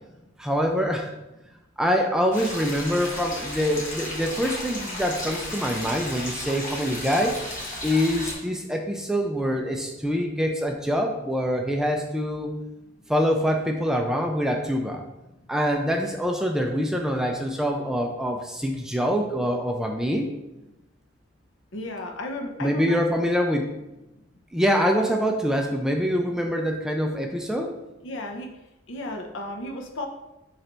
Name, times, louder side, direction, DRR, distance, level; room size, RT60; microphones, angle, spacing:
voice 1, 0.4-1.1 1.8-7.4 7.8-12.6 13.1-15.0 15.5-20.3 22.6-23.7 24.5-27.7, equal, 5° right, 2 dB, 0.3 m, -25 dB
sound 1, 2.3-8.3, left 1 dB, 40° left, 1.1 m, -34 dB
voice 2, 21.7-23.0 28.0-28.5 28.9-30.1, left 1 dB, 70° left, 3 dB, 0.7 m, -34 dB
3.9 x 3.2 x 4.3 m, 0.98 s
head